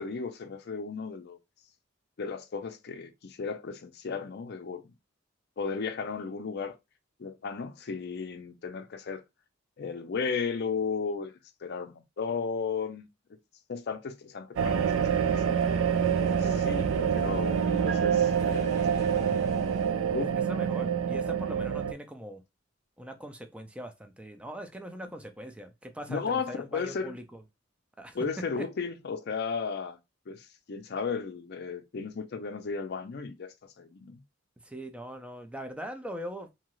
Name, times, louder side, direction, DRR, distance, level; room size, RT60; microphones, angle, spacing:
voice 1, 0.0-1.4 2.2-4.8 5.6-6.7 7.2-9.2 9.8-13.1 13.7-15.6 16.2-19.4 20.1-20.4 26.1-27.1 28.1-30.0 30.3-34.2, left 5 dB, 55° left, 0.5 m, -35 dB
sound 1, 14.5-19.9, right 1 dB, 55° right, 1.1 m, -48 dB
sound 2, 14.6-21.9, right 7 dB, 80° right, 0.3 m, -26 dB
sound 3, 17.9-19.2, right 5 dB, 25° right, 0.8 m, -44 dB
voice 2, 20.5-22.4 23.0-27.4 28.0-28.7 34.6-36.5, equal, 5° right, 0.4 m, -41 dB
2.7 x 2.4 x 3.0 m
head